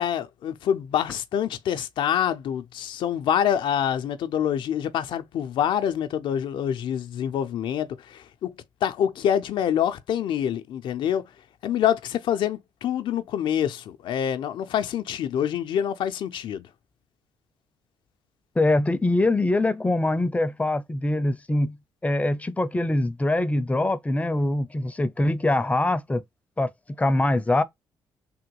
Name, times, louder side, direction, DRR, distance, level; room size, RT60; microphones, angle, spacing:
voice 1, 0.0-8.5 8.8-11.3 11.6-16.7, left 9 dB, 75° left, 0.5 m, -26 dB
voice 2, 18.6-21.8 22.0-26.2 26.6-26.7 27.0-27.6, left 2 dB, 15° left, 0.5 m, -23 dB
3.6 x 2.2 x 2.9 m
cardioid pair, 75°, 9 cm